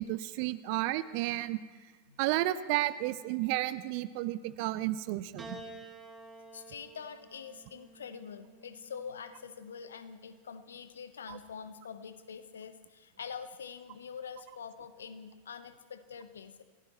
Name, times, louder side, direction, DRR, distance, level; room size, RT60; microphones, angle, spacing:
voice 1, 0.0-1.6 2.2-5.6 11.3-11.4, right 16 dB, 45° right, 15 dB, 0.7 m, -32 dB
Piano, 5.4-9.9 10.9-11.6, right 2 dB, 15° right, 2.6 m, -51 dB
voice 2, 6.5-16.6, left 6 dB, 65° left, 11 dB, 1.1 m, -45 dB
27.5 x 16.5 x 3.1 m, 1.5 s
figure-of-eight pair, 90°, 0 cm